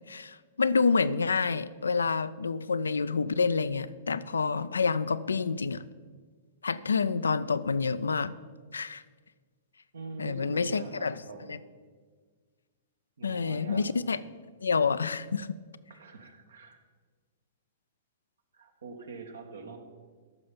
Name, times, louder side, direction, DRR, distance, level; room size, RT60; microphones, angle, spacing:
voice 1, 0.1-5.9 6.6-8.3 8.7-9.0 10.2-11.2 11.5-11.6 13.2-14.2 14.6-15.5, left 5 dB, 85° left, 15 dB, 0.4 m, -28 dB
voice 2, 9.9-11.6 13.2-13.9 15.9-16.8 18.5-19.8, right 4 dB, 75° right, 5 dB, 1.3 m, -44 dB
14.0 x 5.7 x 5.2 m, 1.5 s
hypercardioid pair, 110°, 0 cm